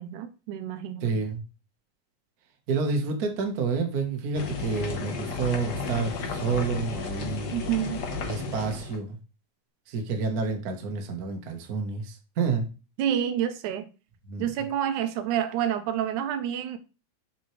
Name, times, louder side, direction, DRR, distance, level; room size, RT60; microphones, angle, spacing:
voice 1, 0.0-1.2 7.5-8.1 13.0-13.9 14.4-16.8, right 10 dB, 85° right, 2.3 m, -28 dB
voice 2, 1.0-1.4 2.7-7.6 8.2-9.2 9.9-12.7 14.3-14.5, right 4 dB, 50° right, 1.1 m, -29 dB
sound 1, 4.3-9.0, left 4 dB, 70° left, 1.0 m, -33 dB
7.4 x 5.9 x 3.2 m
omnidirectional pair, 3.4 m